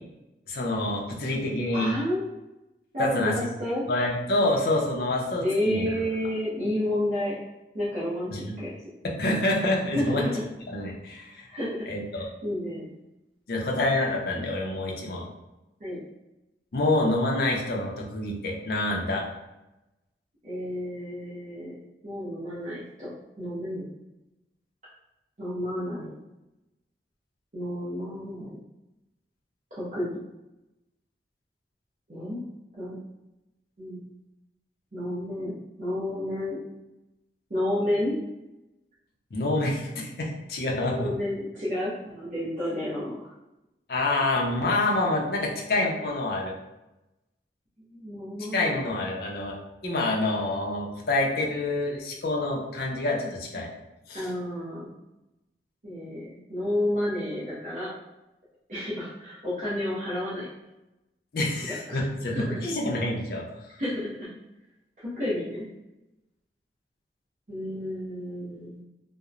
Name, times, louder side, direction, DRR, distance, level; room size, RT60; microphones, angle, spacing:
voice 1, 0.5-1.9 3.0-3.3 3.9-5.9 8.3-8.5 9.2-10.2 10.7-11.5 11.9-12.3 13.5-15.2 16.7-19.2 39.3-41.1 43.9-46.5 48.5-53.7 54.1-54.3 61.3-63.5, left 2 dB, 55° left, -1 dB, 0.5 m, -27 dB
voice 2, 1.7-2.2 2.9-3.8 5.4-7.3 7.7-8.7 9.9-10.4 11.5-11.9 12.1-12.9 15.8-16.0 20.4-21.7 22.0-23.1 23.4-23.9 25.4-26.1 27.5-28.5 29.7-30.1 32.1-32.4 32.8-33.0 33.8-34.0 34.9-36.6 37.5-38.1 40.9-43.3 47.9-48.8 54.1-54.9 55.8-57.9 58.7-60.5 61.6-62.6 63.8-64.3 65.2-65.7 67.5-68.8, left 1 dB, 45° right, -10 dB, 0.7 m, -30 dB
2.9 x 2.0 x 2.4 m, 0.96 s
head